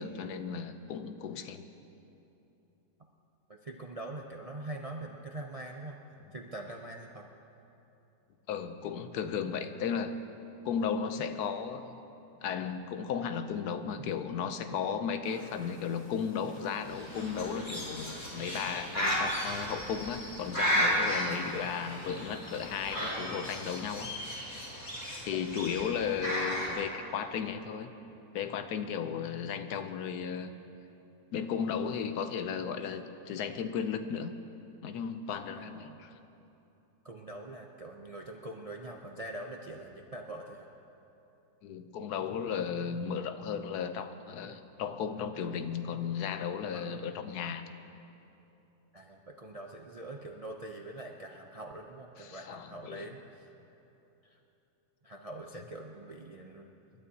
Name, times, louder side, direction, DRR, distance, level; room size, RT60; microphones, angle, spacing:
voice 1, 0.0-1.6 8.5-10.2 10.6-11.9 12.4-24.1 25.2-27.9 28.3-30.5 31.3-34.3 34.8-36.1 41.6-47.7 52.2-53.1, left 7 dB, 85° left, 9 dB, 1.3 m, -35 dB
voice 2, 3.5-6.0 6.3-7.3 9.2-9.5 25.3-25.5 35.6-36.0 37.0-40.7 46.7-47.1 48.9-53.5 54.2-54.4 55.0-56.7, right 2 dB, 45° right, 1 dB, 0.4 m, -44 dB
sound 1, 15.2-23.0, equal, 10° left, 2.0 m, -49 dB
Bird, 16.8-26.7, equal, 25° left, 4.4 m, -34 dB
28.0 x 12.0 x 2.8 m, 2.9 s
omnidirectional pair, 1.6 m